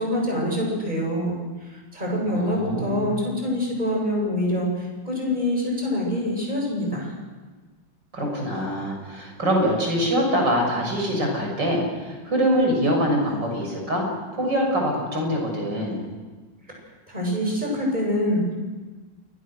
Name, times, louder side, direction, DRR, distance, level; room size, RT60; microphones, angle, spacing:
voice 1, 0.0-1.4 1.6-7.1 17.1-18.5, left 1 dB, 20° right, -1 dB, 8.1 m, -25 dB
voice 2, 2.3-3.1 8.1-14.1 14.3-16.0, equal, 65° right, 1 dB, 7.6 m, -24 dB
29.0 x 22.5 x 6.5 m, 1.3 s
omnidirectional pair, 2.1 m